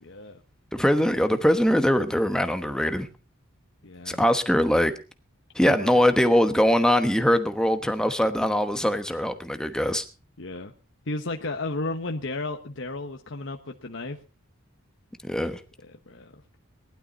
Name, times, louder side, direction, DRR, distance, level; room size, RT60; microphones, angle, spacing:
voice 1, 0.0-0.4 3.8-4.2 5.6-5.9 10.4-10.7 11.1-14.2 15.8-16.3, left 2 dB, 65° left, 3 dB, 1.1 m, -33 dB
voice 2, 0.7-3.1 4.1-4.9 5.5-10.0 15.2-15.6, equal, 5° left, 8 dB, 1.1 m, -22 dB
19.0 x 12.0 x 4.1 m, 0.33 s
head